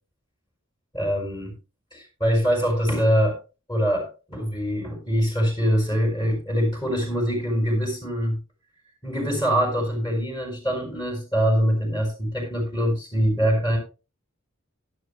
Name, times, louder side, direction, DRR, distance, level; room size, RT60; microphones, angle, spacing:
voice 1, 0.9-1.6 1.9-3.4 3.7-8.4 9.0-13.8, equal, 20° left, 2 dB, 5.5 m, -23 dB
17.0 x 11.5 x 2.2 m, 0.30 s
head